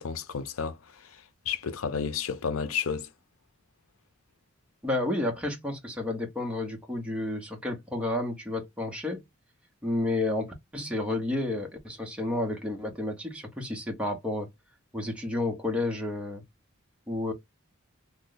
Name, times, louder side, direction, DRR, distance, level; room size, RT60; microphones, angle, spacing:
voice 1, 0.0-3.1, left 6 dB, 90° left, 0.5 m, -32 dB
voice 2, 4.8-9.2 9.8-14.5 14.9-16.4 17.1-17.3, left 2 dB, 5° right, 0.9 m, -31 dB
3.1 x 2.1 x 3.9 m
head